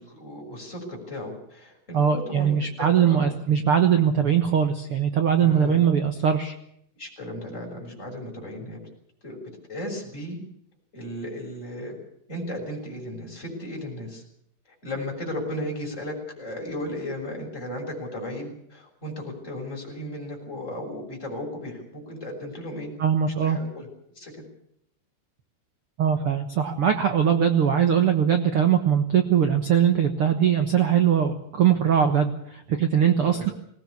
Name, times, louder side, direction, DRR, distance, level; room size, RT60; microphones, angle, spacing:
voice 1, 0.0-3.4 5.4-5.9 7.0-8.8 9.2-9.4 9.7-10.4 10.9-12.0 12.3-14.2 14.8-22.9 23.4-23.9 24.2-24.3 33.2-33.5, left 1 dB, 20° left, -1 dB, 7.0 m, -35 dB
voice 2, 1.9-6.5 23.0-23.6 26.0-33.5, right 8 dB, 65° right, 6 dB, 1.3 m, -21 dB
20.0 x 18.5 x 8.4 m, 0.71 s
omnidirectional pair, 4.4 m